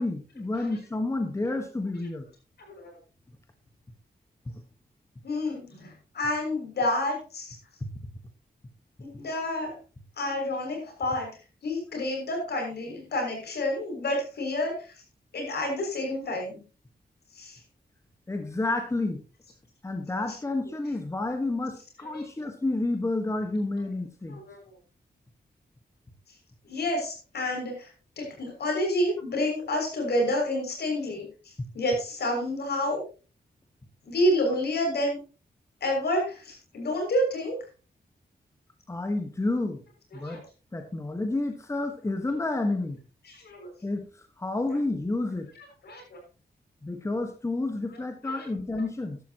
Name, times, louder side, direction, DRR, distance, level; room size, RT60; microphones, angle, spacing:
voice 1, 0.0-2.3 18.3-19.2 19.8-24.4 31.6-31.7 38.9-39.8 40.1-40.4 40.7-43.0 43.8-45.5 46.8-49.2, left 2 dB, 15° left, 5 dB, 1.4 m, -30 dB
voice 2, 5.2-7.5 9.0-9.8 10.2-11.3 11.6-14.9 15.3-16.6 17.3-17.6 22.1-22.2 24.3-24.6 26.7-27.9 28.2-33.0 34.0-35.2 35.8-37.6 40.2-40.4 43.3-43.7 45.8-46.2 48.2-48.4, left 1 dB, 75° left, 1 dB, 6.6 m, -29 dB
14.0 x 12.5 x 3.0 m, 0.34 s
wide cardioid pair, 160°, 17 cm